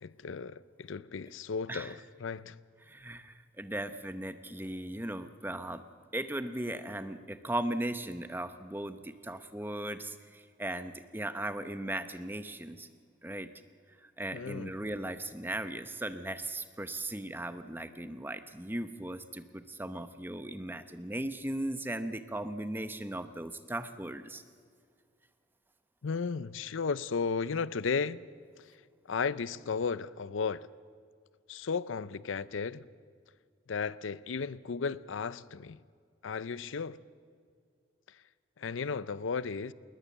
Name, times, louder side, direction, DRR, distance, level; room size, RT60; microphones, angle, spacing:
voice 1, 0.0-2.6 14.3-14.7 26.0-28.2 29.1-30.7 31.5-32.8 33.7-35.8 36.2-37.0 38.6-39.7, left 5 dB, 80° left, 0.5 m, -34 dB
voice 2, 2.9-5.8 6.1-12.9 13.2-13.5 14.2-24.4, right 1 dB, 10° right, 0.8 m, -37 dB
20.5 x 20.0 x 7.2 m
head